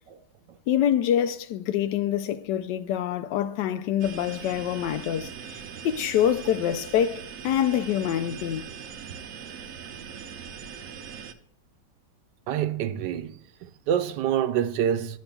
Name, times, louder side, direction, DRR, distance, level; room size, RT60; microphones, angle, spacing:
voice 1, 0.7-8.6, left 10 dB, 85° left, 1.2 m, -26 dB
sound 1, 4.0-11.3, right 7 dB, 65° right, 0.9 m, -41 dB
voice 2, 12.5-15.2, right 9 dB, 85° right, 1.3 m, -27 dB
10.5 x 7.0 x 2.3 m
omnidirectional pair, 1.8 m